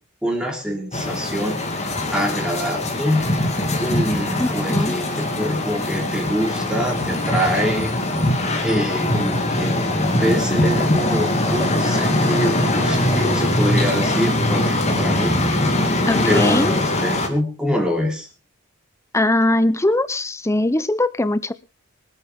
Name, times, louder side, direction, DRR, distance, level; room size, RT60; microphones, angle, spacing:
voice 1, 0.2-1.6 2.1-3.3 3.8-7.9 8.6-15.4 16.2-18.3, equal, 5° right, 1 dB, 3.4 m, -25 dB
sound 1, 0.9-17.3, left 1 dB, 30° left, 2.5 m, -21 dB
voice 2, 4.4-4.9 16.1-16.7 19.1-21.5, left 1 dB, 15° left, 14 dB, 0.7 m, -20 dB
24.5 x 8.9 x 3.7 m, 0.32 s
head